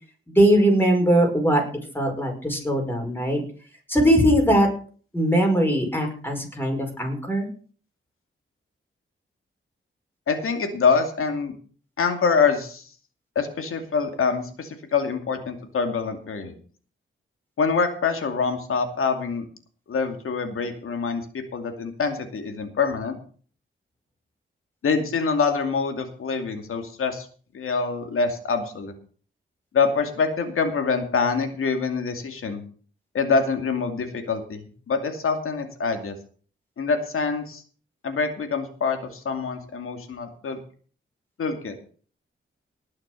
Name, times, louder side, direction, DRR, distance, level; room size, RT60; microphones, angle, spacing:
voice 1, 0.4-1.6 1.9-3.4 3.9-4.7 5.1-7.5, right 1 dB, 10° left, 1 dB, 5.4 m, -20 dB
voice 2, 10.3-11.5 12.0-12.9 13.4-16.5 17.6-19.4 19.9-23.2 24.8-27.3 27.5-28.9 29.7-32.6 33.1-34.6 34.9-36.1 36.8-37.6 38.0-40.6 41.4-41.7, left 5 dB, 90° left, 6 dB, 2.4 m, -25 dB
19.0 x 6.6 x 6.2 m, 0.43 s
wide cardioid pair, 110°, 21 cm